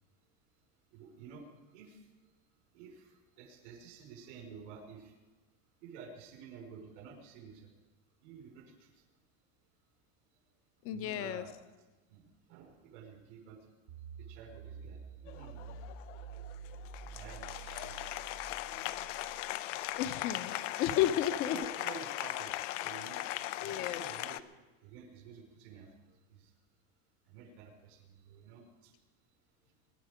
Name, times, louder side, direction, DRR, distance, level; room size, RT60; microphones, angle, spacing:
voice 1, 0.9-2.1 2.7-5.1 5.8-7.7 8.2-9.0 10.9-11.5 12.1-13.7 14.2-15.8 17.1-18.2 21.0-21.1 21.4-22.5 22.8-23.2 23.6-24.4 24.8-26.5 27.3-28.9, right 6 dB, 75° right, 2 dB, 5.1 m, -51 dB
voice 2, 10.8-11.4 19.9-21.6 23.6-24.0, left 11 dB, 40° left, 11 dB, 0.8 m, -32 dB
sound 1, 13.9-20.1, right 6 dB, 60° right, 1.4 m, -49 dB
Applause, 15.3-24.4, left 15 dB, 90° left, 0.8 m, -39 dB
23.0 x 11.0 x 5.1 m, 1.2 s
cardioid pair, 165°, 36 cm